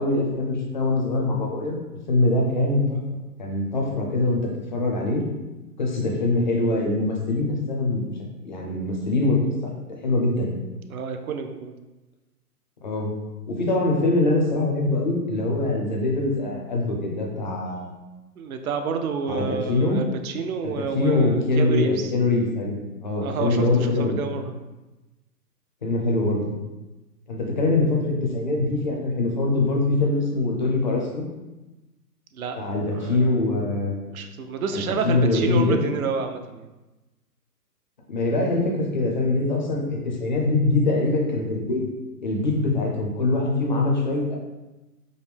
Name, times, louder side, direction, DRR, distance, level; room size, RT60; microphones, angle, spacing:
voice 1, 0.0-1.8 2.1-3.0 3.4-4.4 4.7-5.2 5.8-8.1 8.4-9.4 10.0-10.6 12.8-13.1 13.5-17.9 19.3-20.0 20.6-24.2 25.8-26.5 27.3-31.3 32.6-34.0 34.7-35.8 38.1-41.9 42.2-44.4, left 2 dB, 30° left, -1 dB, 0.5 m, -23 dB
voice 2, 10.9-11.7 18.4-22.1 23.2-24.5 32.3-33.3 34.1-36.7, right 5 dB, 60° right, 7 dB, 0.5 m, -29 dB
5.0 x 2.1 x 3.4 m, 1.1 s
hypercardioid pair, 150°, 48 cm